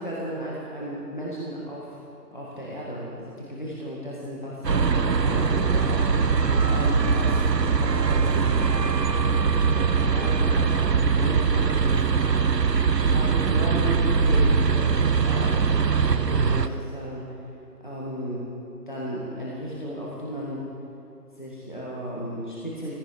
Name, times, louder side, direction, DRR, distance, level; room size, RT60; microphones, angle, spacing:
voice 1, 0.0-2.0 2.3-12.3 13.0-17.4 17.8-18.5 18.9-20.7 21.4-22.9, equal, 30° left, -6 dB, 1.9 m, -35 dB
sound 1, 4.6-16.7, right 5 dB, 75° right, 0.9 m, -22 dB
17.5 x 15.5 x 5.1 m, 2.8 s
figure-of-eight pair, 180°, 50 cm